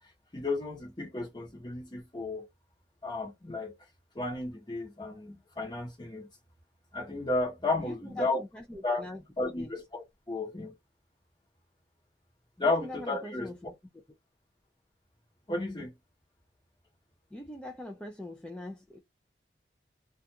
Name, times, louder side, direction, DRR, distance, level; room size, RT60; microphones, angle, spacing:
voice 1, 0.3-2.5 3.0-3.7 4.1-6.3 6.9-8.4 8.8-9.1 9.4-10.7 12.6-13.5 15.5-15.9, left 2 dB, 25° left, 0.9 m, -33 dB
voice 2, 7.8-9.2 9.5-9.7 12.6-13.7 17.3-19.0, left 1 dB, 5° left, 0.3 m, -42 dB
2.4 x 2.3 x 2.7 m
head